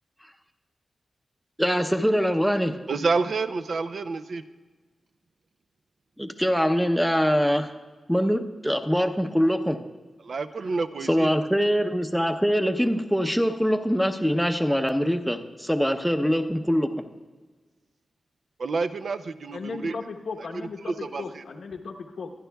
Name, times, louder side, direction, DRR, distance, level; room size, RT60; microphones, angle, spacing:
voice 1, 1.6-2.8 6.2-7.7 8.1-9.8 11.1-16.9, equal, ahead, 6 dB, 0.7 m, -23 dB
voice 2, 2.9-4.4 10.2-11.3 18.6-20.0 20.9-21.4, right 4 dB, 65° right, 11 dB, 0.5 m, -28 dB
voice 3, 19.5-22.3, left 4 dB, 85° left, 2 dB, 1.0 m, -36 dB
24.0 x 10.0 x 2.3 m, 1.3 s
wide cardioid pair, 110°, 0 cm